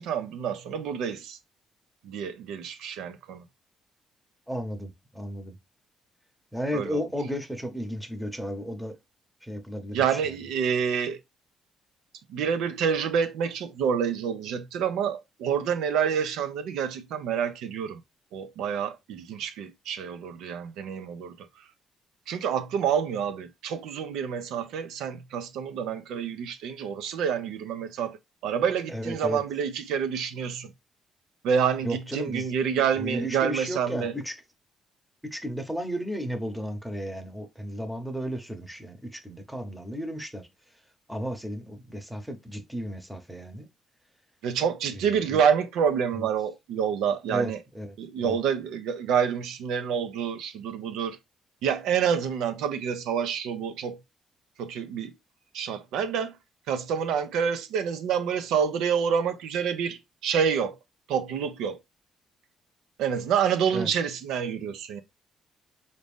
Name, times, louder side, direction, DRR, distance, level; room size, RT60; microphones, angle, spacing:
voice 1, 0.0-1.4 2.0-3.4 6.7-7.0 9.9-11.2 12.3-18.0 18.3-21.3 22.3-28.2 28.4-30.7 31.4-34.1 44.4-47.6 48.0-51.2 51.6-54.0 54.6-55.1 55.5-56.4 56.7-60.8 61.1-61.8 63.0-65.0, right 7 dB, 90° right, 0.5 m, -28 dB
voice 2, 4.5-5.6 6.5-9.0 9.4-10.4 28.9-29.4 31.8-34.3 35.2-40.5 41.1-43.7 44.9-45.4 46.2-46.3 47.3-47.9 48.2-48.4 63.7-63.9, equal, 5° right, 0.8 m, -34 dB
3.9 x 2.6 x 3.5 m
cardioid pair, 90°, 0 cm